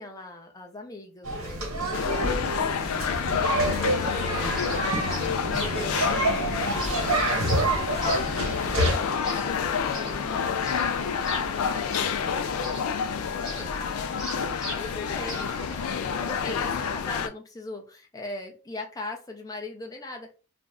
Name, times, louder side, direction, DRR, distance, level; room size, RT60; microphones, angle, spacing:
voice 1, 0.0-8.3 8.8-9.7 9.9-11.0 11.2-14.3 14.7-20.3, left 2 dB, 15° left, 0.5 m, -41 dB
sound 1, 1.2-8.9, right 2 dB, 85° right, 1.2 m, -28 dB
sound 2, 1.9-17.3, left 6 dB, 85° left, 0.4 m, -29 dB
sound 3, 4.2-16.9, equal, 5° right, 0.9 m, -41 dB
2.5 x 2.0 x 3.5 m
head